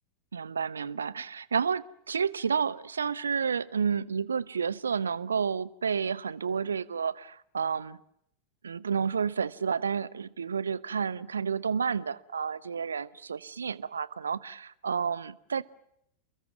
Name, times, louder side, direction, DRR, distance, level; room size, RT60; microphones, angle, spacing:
voice 1, 0.3-8.0 8.6-15.6, right 6 dB, 70° right, 0.9 m, -30 dB
29.5 x 22.0 x 7.3 m
figure-of-eight pair, 90°, 0 cm